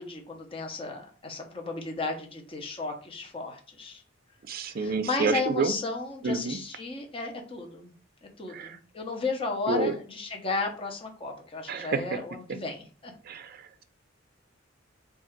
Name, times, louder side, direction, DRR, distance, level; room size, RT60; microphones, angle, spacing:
voice 1, 0.0-4.0 4.7-7.9 8.4-13.1, left 3 dB, 30° left, 2 dB, 0.8 m, -34 dB
voice 2, 4.5-5.7 6.2-6.6 8.5-8.8 9.7-10.0 11.7-12.2 13.3-13.6, right 4 dB, 50° right, 11 dB, 0.4 m, -28 dB
3.7 x 2.4 x 4.4 m, 0.40 s
head